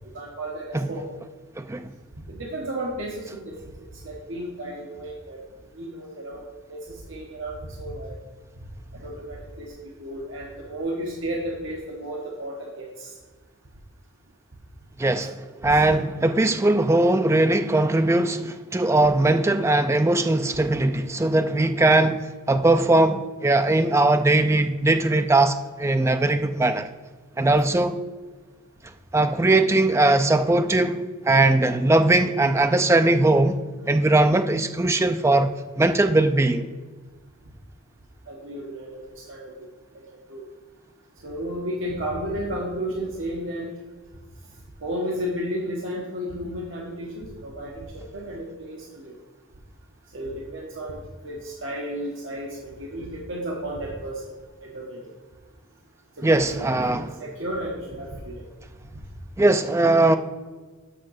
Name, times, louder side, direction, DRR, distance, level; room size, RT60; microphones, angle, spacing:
voice 1, 0.1-1.1 2.3-3.6 4.0-5.4 5.8-8.2 9.0-13.1 15.6-15.7 38.3-39.7 40.3-40.4 41.2-43.7 44.8-49.1 50.1-54.2 54.6-55.0 56.2-58.5, right 1 dB, 60° right, 1.1 m, -33 dB
voice 2, 1.6-1.9 15.0-15.4 15.6-26.9 27.4-28.0 29.1-33.6 33.9-36.7 56.2-57.1 59.4-60.2, right 2 dB, 15° right, 0.3 m, -20 dB
6.5 x 5.8 x 6.4 m
head